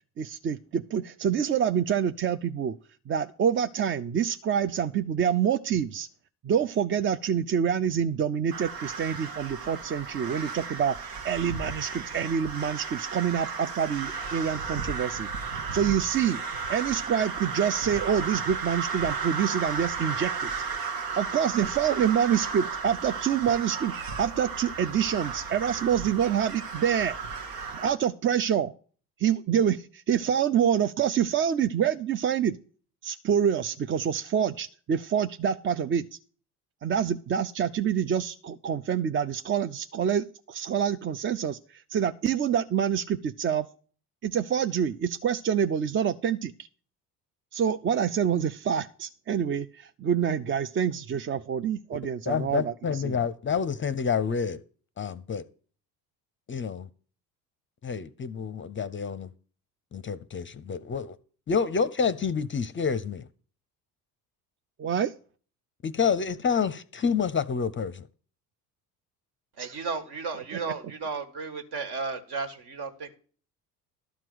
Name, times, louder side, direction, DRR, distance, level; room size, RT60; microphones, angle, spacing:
voice 1, 0.2-2.8 3.1-6.1 6.4-16.4 16.7-20.5 21.2-27.2 27.7-28.7 29.2-32.6 33.0-36.0 36.8-43.7 44.2-46.5 47.5-53.2 64.8-65.1 69.6-69.8 70.3-70.6, right 8 dB, 25° right, 0.5 m, -27 dB
sound 1, 8.5-27.9, right 5 dB, 75° right, 1.4 m, -34 dB
voice 2, 52.3-54.6 55.0-55.4 56.5-56.9 57.8-59.3 59.9-61.2 61.5-63.3 65.8-68.1, left 6 dB, 25° left, 0.6 m, -28 dB
voice 3, 69.6-73.1, right 4 dB, 55° right, 1.8 m, -34 dB
12.0 x 4.5 x 7.7 m
hypercardioid pair, 55°, 47 cm